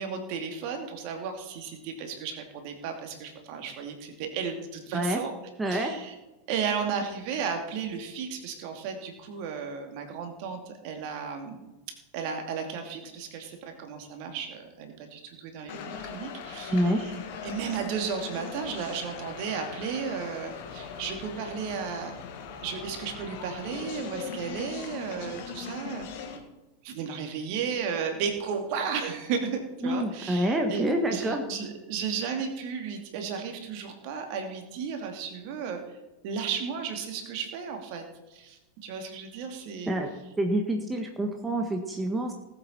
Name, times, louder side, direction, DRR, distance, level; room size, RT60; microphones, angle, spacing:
voice 1, 0.0-5.3 5.7-6.1 6.5-11.6 12.1-17.1 17.4-22.1 22.6-26.1 26.8-36.0 36.2-38.0 38.3-39.9, right 6 dB, 45° right, 4 dB, 2.6 m, -34 dB
voice 2, 5.6-5.9 16.7-17.0 29.8-31.4 39.9-40.1 40.4-42.3, right 1 dB, 10° right, 3 dB, 1.6 m, -27 dB
sound 1, 15.7-26.4, left 6 dB, 50° left, 2.2 m, -40 dB
19.5 x 8.2 x 4.5 m, 1.1 s
figure-of-eight pair, 90°, 0 cm